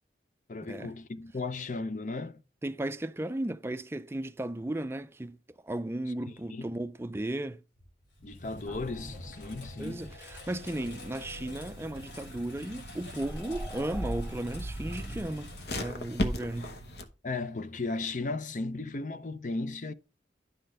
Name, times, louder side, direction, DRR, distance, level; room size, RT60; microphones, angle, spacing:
voice 1, 0.5-2.4 6.5-6.7 8.2-10.0 17.2-19.9, left 3 dB, 45° left, 0.6 m, -35 dB
voice 2, 2.6-5.4 5.6-7.6 9.8-16.7, right 1 dB, 15° right, 0.4 m, -35 dB
Engine, 7.8-16.5, left 1 dB, 85° left, 3.1 m, -48 dB
sound 1, 8.7-15.2, right 1 dB, 15° left, 1.6 m, -42 dB
sound 2, 10.6-17.0, left 1 dB, 70° left, 1.1 m, -39 dB
11.0 x 5.9 x 3.3 m
head